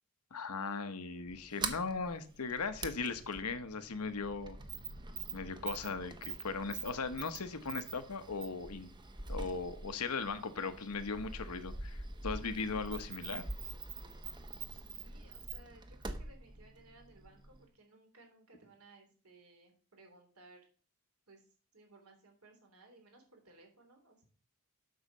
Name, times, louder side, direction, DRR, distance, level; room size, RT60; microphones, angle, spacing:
voice 1, 0.3-4.6 5.3-8.9 9.3-13.4, left 4 dB, 90° left, 11 dB, 1.0 m, -38 dB
Sliding door, 1.3-17.6, right 3 dB, 20° right, 0.8 m, -45 dB
voice 2, 14.3-20.6 21.3-21.4 21.7-24.3, right 2 dB, 75° right, 3 dB, 3.0 m, -61 dB
7.9 x 5.7 x 6.5 m, 0.42 s
head